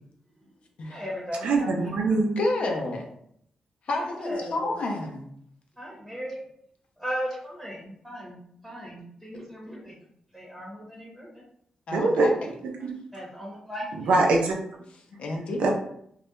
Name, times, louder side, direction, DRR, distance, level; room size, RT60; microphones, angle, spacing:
voice 1, 0.9-2.0 4.0-4.6 5.8-6.4 7.0-9.9 10.3-11.4 13.1-14.3, equal, 5° right, -5 dB, 0.7 m, -37 dB
voice 2, 1.4-2.5 11.9-12.3 12.6-12.9 14.1-14.6 15.6-15.7, right 3 dB, 90° right, 0 dB, 0.4 m, -23 dB
voice 3, 2.4-3.0 3.9-5.3 11.9-12.3 15.2-15.7, left 2 dB, 65° left, 2 dB, 0.5 m, -29 dB
2.2 x 2.1 x 2.9 m, 0.69 s
cardioid pair, 90°, 2 cm